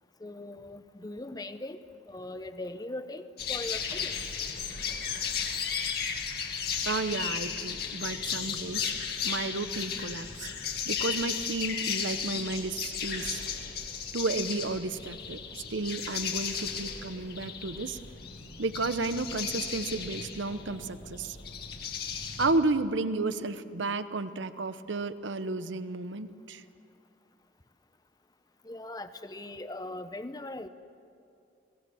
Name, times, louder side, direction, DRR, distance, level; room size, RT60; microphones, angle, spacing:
voice 1, 0.2-1.8 2.1-4.2 28.6-30.7, left 1 dB, 20° left, 10 dB, 0.9 m, -40 dB
sound 1, 3.4-22.5, left 7 dB, 55° left, 2.1 m, -35 dB
voice 2, 6.9-8.9 9.2-10.5 10.9-13.5 14.1-15.4 15.7-18.0 18.6-21.4 22.4-26.6, right 3 dB, 80° right, 12 dB, 0.9 m, -32 dB
29.0 x 18.5 x 7.1 m, 2.5 s
head